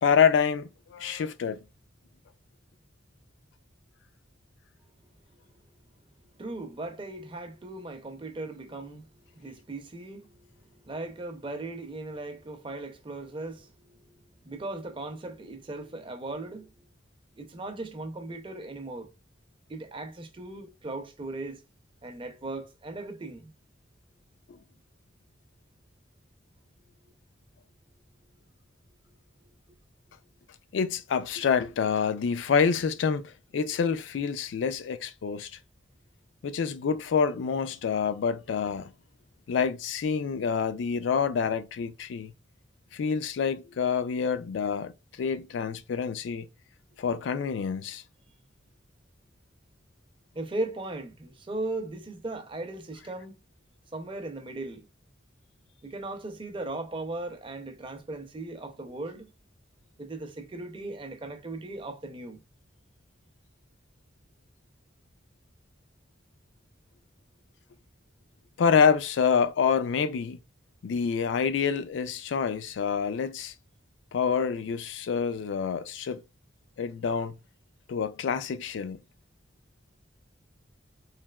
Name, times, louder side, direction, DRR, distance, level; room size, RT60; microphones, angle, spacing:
voice 1, 0.0-1.6 24.5-24.6 30.7-35.5 36.4-38.9 39.5-42.3 42.9-46.5 47.0-48.0 68.6-70.4 70.8-73.5 74.1-76.2 76.8-77.3 77.9-79.0, left 6 dB, 70° left, 0.3 m, -27 dB
voice 2, 6.2-16.9 17.4-19.1 19.7-21.6 22.0-23.5 50.3-53.3 53.9-54.9 55.8-59.3 60.0-62.4, right 2 dB, 25° right, 0.5 m, -38 dB
3.2 x 2.7 x 2.2 m
head